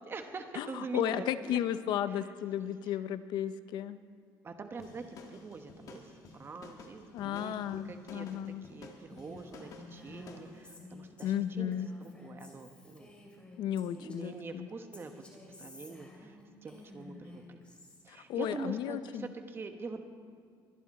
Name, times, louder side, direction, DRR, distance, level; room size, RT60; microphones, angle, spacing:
voice 1, 0.0-1.6 2.1-2.3 2.8-3.0 4.4-13.2 13.9-15.2 15.6-16.4 16.6-17.6 18.0-20.0, right 4 dB, 30° right, 6 dB, 1.2 m, -44 dB
voice 2, 0.6-4.0 7.1-8.6 11.2-11.9 13.6-14.7 18.1-19.3, left 11 dB, 70° left, 13 dB, 0.6 m, -34 dB
sound 1, 4.8-10.5, left 3 dB, 50° left, 1.7 m, -52 dB
Female speech woman speaking, 9.1-14.5 14.9-18.0, left 2 dB, 15° left, 2.8 m, -52 dB
23.0 x 10.5 x 4.3 m, 2.1 s
cardioid pair, 135°, 8 cm